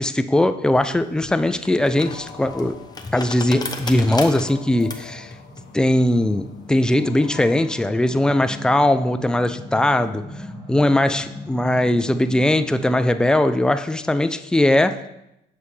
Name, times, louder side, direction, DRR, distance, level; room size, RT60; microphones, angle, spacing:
voice 1, 0.0-2.8 3.1-5.3 5.7-10.3 10.7-15.0, left 1 dB, 5° left, 10 dB, 0.3 m, -20 dB
sound 1, 0.7-7.4, left 3 dB, 20° left, 0.8 m, -36 dB
sound 2, 2.0-9.2, left 7 dB, 75° left, 0.8 m, -45 dB
sound 3, 4.4-13.4, left 1 dB, 25° right, 1.4 m, -40 dB
6.9 x 5.7 x 3.2 m, 0.85 s
cardioid pair, 90°, 20 cm